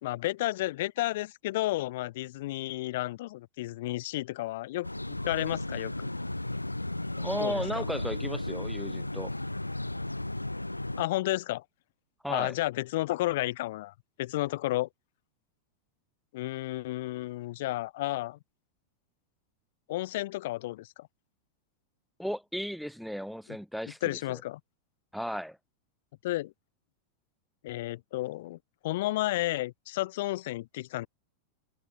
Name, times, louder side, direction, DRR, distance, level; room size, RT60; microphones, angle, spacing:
voice 1, 0.0-6.1 7.4-7.9 11.0-11.6 12.3-14.9 16.3-18.4 19.9-21.1 24.0-24.6 26.2-26.5 27.6-31.1, left 17 dB, 55° left, 2.1 m, -32 dB
sound 1, 4.8-11.0, left 2 dB, 85° left, 0.8 m, -34 dB
voice 2, 7.2-9.3 12.2-12.5 22.2-24.4 25.1-25.6, equal, ahead, 2.5 m, -35 dB
figure-of-eight pair, 90°, 0 cm